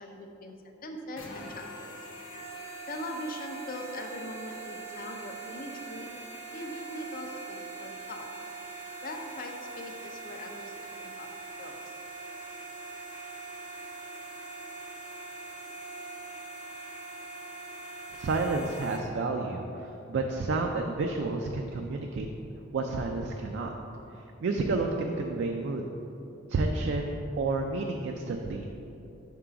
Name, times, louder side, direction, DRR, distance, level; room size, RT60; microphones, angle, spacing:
voice 1, 0.0-2.0 2.9-6.1 6.5-8.3 9.0-11.3 11.6-11.8, left 1 dB, 45° left, 4 dB, 0.5 m, -41 dB
sound 1, 1.1-19.0, right 3 dB, 90° left, 0.9 m, -42 dB
voice 2, 18.1-19.6 20.1-22.3 22.7-23.7 24.4-25.9 26.5-28.7, right 3 dB, 60° right, 2 dB, 0.3 m, -30 dB
4.8 x 3.7 x 5.7 m, 2.9 s
head